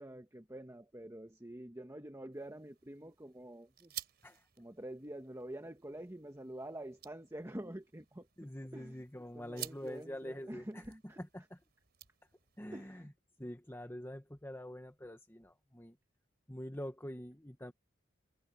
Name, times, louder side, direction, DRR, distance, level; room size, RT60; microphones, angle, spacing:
voice 1, 0.0-3.9 4.6-9.0 9.3-11.2 12.7-13.1, right 1 dB, 15° right, 1.4 m, -47 dB
sound 1, 2.3-12.6, right 12 dB, 55° right, 4.3 m, -53 dB
voice 2, 8.4-10.8 11.2-11.6 12.6-13.1 13.4-16.0 16.5-17.7, equal, 10° left, 1.4 m, -45 dB
head